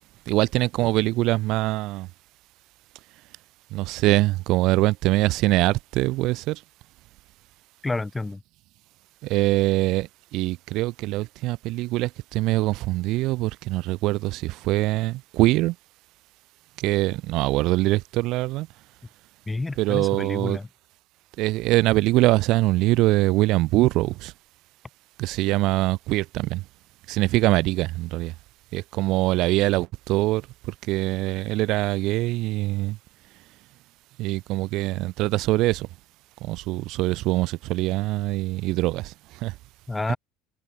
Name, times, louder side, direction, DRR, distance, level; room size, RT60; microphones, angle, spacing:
voice 1, 0.3-2.1 3.7-6.6 9.2-15.8 16.8-18.7 19.8-20.6 21.4-24.3 25.2-26.6 27.1-28.3 28.7-30.5 30.9-33.0 34.2-35.9 36.4-39.5 40.1-40.2, right 19 dB, 55° right, 5.2 m, -23 dB
voice 2, 7.8-8.4 19.5-20.7 39.9-40.2, left 2 dB, 15° left, 5.4 m, -29 dB
figure-of-eight pair, 65°, 0 cm